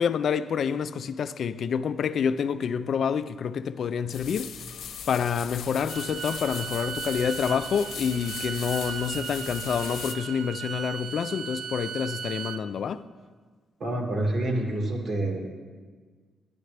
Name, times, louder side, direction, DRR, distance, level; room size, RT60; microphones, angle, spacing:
voice 1, 0.0-4.5 5.1-13.0, left 7 dB, 65° left, 0.4 m, -28 dB
sound 1, 4.1-10.1, left 7 dB, 80° left, 0.8 m, -39 dB
Bowed string instrument, 5.9-12.6, right 7 dB, 75° right, 0.5 m, -37 dB
voice 2, 13.8-15.4, right 1 dB, 55° right, 2.1 m, -27 dB
11.5 x 10.0 x 3.3 m
cardioid pair, 100°, 0 cm